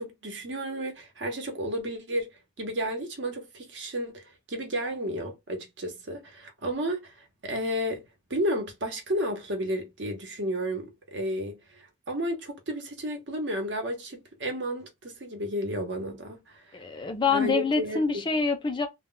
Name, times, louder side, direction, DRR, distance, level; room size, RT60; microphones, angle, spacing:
voice 1, 0.0-2.3 2.6-8.0 8.3-16.8 17.3-18.0, equal, 60° right, 0.8 m, -32 dB
voice 2, 16.7-18.9, left 4 dB, 25° left, 0.5 m, -26 dB
2.2 x 2.1 x 3.7 m
head